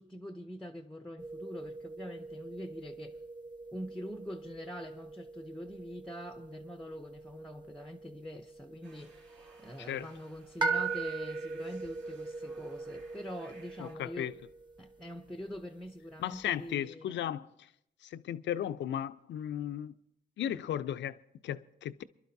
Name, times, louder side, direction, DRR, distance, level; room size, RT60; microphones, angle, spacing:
voice 1, 0.0-3.2 3.7-9.2 9.6-14.3 14.8-17.3, equal, ahead, 0.7 m, -44 dB
sound 1, 1.2-16.7, right 4 dB, 20° right, 1.3 m, -41 dB
sound 2, 8.8-14.0, right 3 dB, 85° right, 5.0 m, -59 dB
voice 2, 13.8-14.3 16.2-17.7 18.0-19.9 20.4-22.0, left 10 dB, 65° left, 0.6 m, -36 dB
28.0 x 11.5 x 2.7 m
cardioid pair, 90°, 20 cm